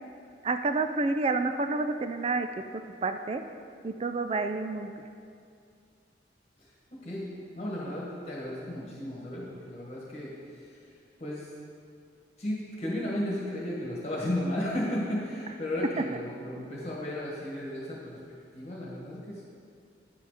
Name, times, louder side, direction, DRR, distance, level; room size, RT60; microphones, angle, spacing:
voice 1, 0.4-2.5 2.7-3.4 3.8-5.1 16.0-16.1, right 3 dB, 30° right, 8 dB, 0.3 m, -29 dB
voice 2, 7.5-11.5 12.4-18.2 18.5-19.4, left 1 dB, 35° left, -5 dB, 1.4 m, -34 dB
9.6 x 6.9 x 4.9 m, 2.3 s
head